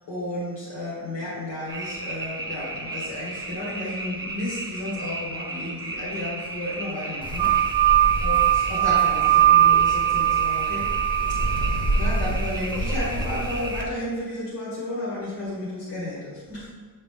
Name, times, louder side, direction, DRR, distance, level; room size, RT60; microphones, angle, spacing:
voice 1, 0.1-10.9 11.6-16.7, left 1 dB, 75° left, -8 dB, 1.9 m, -33 dB
sound 1, 1.7-13.8, right 2 dB, 10° right, 0.4 m, -35 dB
Wind, 7.2-13.8, right 1 dB, 15° left, 0.7 m, -29 dB
sound 2, 7.4-12.2, right 13 dB, 75° right, 0.5 m, -20 dB
8.1 x 3.9 x 3.8 m, 1.5 s
cardioid pair, 180°, 36 cm